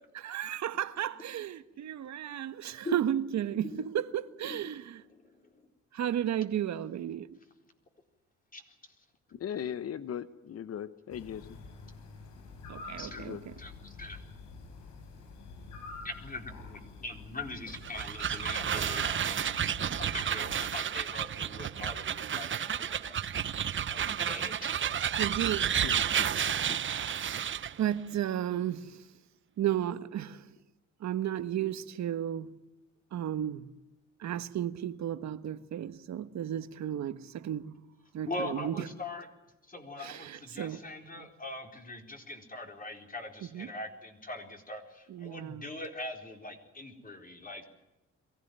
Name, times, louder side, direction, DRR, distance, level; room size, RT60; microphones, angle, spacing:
voice 1, 0.2-5.0 5.9-7.3 12.7-13.5 25.2-25.8 27.3-29.0 29.6-30.5 31.0-32.5 33.1-33.7 34.2-37.8 38.1-38.9 40.0-41.3 43.5-43.7 45.1-45.7, right 11 dB, 65° right, 1.3 m, -34 dB
voice 2, 9.3-11.6 13.1-13.4 25.8-26.8, left 9 dB, 55° left, 1.0 m, -39 dB
sound 1, 11.1-20.8, left 4 dB, 80° left, 4.6 m, -47 dB
voice 3, 13.0-13.3 13.6-14.2 16.0-19.5 20.0-23.2 23.9-24.7 38.3-39.3 39.7-47.6, left 2 dB, 30° left, 4.3 m, -42 dB
sound 2, 17.7-27.8, right 8 dB, 40° right, 0.8 m, -31 dB
23.0 x 16.0 x 9.4 m
cardioid pair, 90°, 30 cm